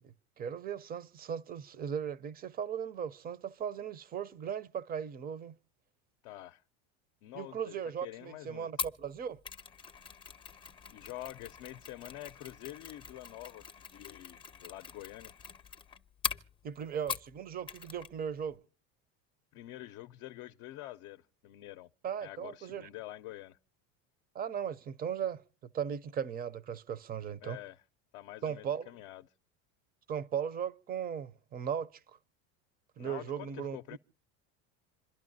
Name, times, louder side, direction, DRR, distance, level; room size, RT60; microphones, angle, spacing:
voice 1, 0.0-5.5 7.3-9.4 16.6-18.6 22.0-22.9 24.3-27.6 28.4-28.9 30.1-31.9 33.0-33.8, right 8 dB, 25° right, 0.6 m, -37 dB
voice 2, 6.2-6.6 7.2-7.7 8.0-8.7 10.9-15.4 19.5-21.9 22.2-23.6 27.4-27.8 28.1-29.3 33.0-34.0, left 15 dB, 60° left, 0.6 m, -47 dB
Mechanisms, 8.8-17.4 17.7-18.1 18.4-18.5, left 6 dB, 15° left, 0.6 m, -42 dB
27.5 x 12.0 x 2.6 m
supercardioid pair, 120°, 35 cm